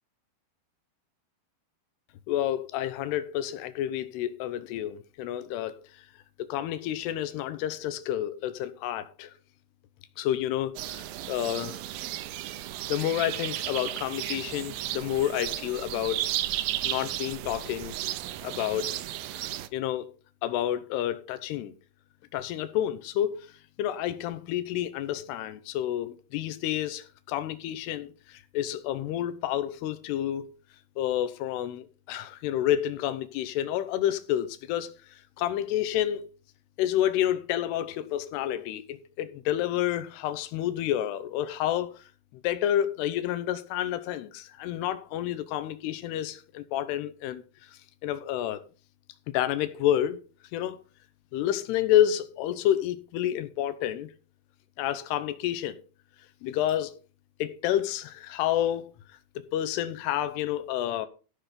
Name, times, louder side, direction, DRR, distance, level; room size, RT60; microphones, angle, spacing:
voice 1, 2.3-5.8 6.4-9.3 10.2-11.8 12.9-16.3 16.8-17.9 18.4-19.0 19.3-20.1 20.4-21.7 22.3-23.5 23.8-30.5 31.0-34.9 35.4-36.3 36.8-42.0 42.4-47.4 48.0-48.6 49.3-50.2 50.5-50.8 51.3-54.1 54.8-55.8 56.4-56.9 57.4-58.9 59.4-61.1, left 12 dB, 90° left, 2.9 m, -29 dB
sound 1, 10.8-19.7, right 14 dB, 80° right, 2.2 m, -34 dB
14.5 x 5.9 x 5.1 m
omnidirectional pair, 4.7 m